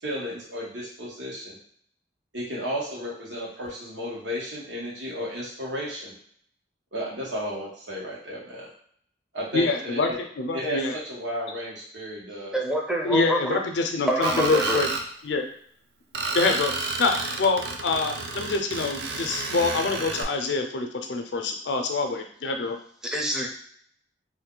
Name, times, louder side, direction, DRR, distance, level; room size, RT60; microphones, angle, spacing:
voice 1, 0.0-1.6 2.3-6.2 6.9-8.7 9.3-10.2 10.5-10.8 11.0-12.6, equal, 85° right, -4 dB, 1.1 m, -33 dB
voice 2, 9.5-10.1 10.4-10.9 13.0-14.9 15.2-15.4 16.3-16.7 17.0-22.8, left 3 dB, 75° left, 4 dB, 0.5 m, -25 dB
voice 3, 12.5-13.6 14.1-14.9 23.0-23.5, right 1 dB, 5° right, -1 dB, 0.5 m, -26 dB
Screech, 14.2-15.0 16.1-20.2, right 3 dB, 65° right, 0.4 m, -31 dB
2.6 x 2.2 x 3.7 m, 0.62 s
head